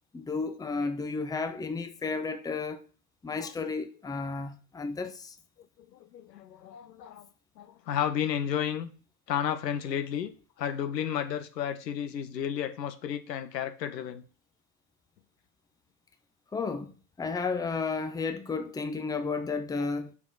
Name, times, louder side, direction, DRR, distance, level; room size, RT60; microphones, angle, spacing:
voice 1, 0.1-2.8 3.2-5.4 16.5-16.9 17.2-20.1, left 4 dB, 10° left, 0.8 m, -32 dB
voice 2, 5.8-7.3 7.6-8.9 9.3-10.3 10.6-14.2 19.5-19.6, left 9 dB, 85° left, 1.4 m, -32 dB
7.2 x 5.8 x 4.1 m
hypercardioid pair, 110°, 48 cm